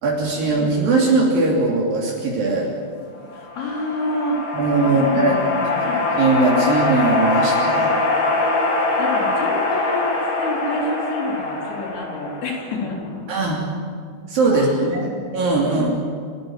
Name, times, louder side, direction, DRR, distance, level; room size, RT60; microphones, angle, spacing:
voice 1, 0.0-2.7 4.5-5.3 6.2-7.9 13.3-13.7 14.3-15.9, right 3 dB, 65° right, -2 dB, 4.7 m, -20 dB
voice 2, 3.3-4.4 4.8-6.0 8.8-13.2 14.5-15.2 15.6-15.9, left 2 dB, 80° left, -1 dB, 6.0 m, -28 dB
sound 1, 3.3-12.9, left 3 dB, 60° left, 5.9 m, -23 dB
28.0 x 14.0 x 9.4 m, 2.2 s
omnidirectional pair, 4.4 m